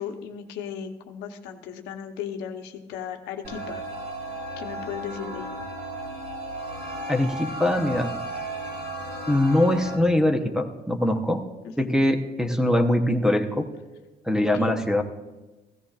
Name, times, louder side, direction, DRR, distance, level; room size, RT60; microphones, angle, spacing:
voice 1, 0.0-3.8 4.6-5.5 11.8-11.9 14.6-14.8, left 8 dB, 90° left, 5 dB, 1.0 m, -36 dB
sound 1, 3.4-10.0, right 1 dB, 80° right, 4.7 m, -34 dB
voice 2, 7.1-8.1 9.3-11.4 11.8-13.7 14.3-15.0, left 1 dB, 5° right, 6 dB, 0.9 m, -22 dB
16.0 x 14.0 x 2.4 m, 1.1 s
cardioid pair, 110°, 17 cm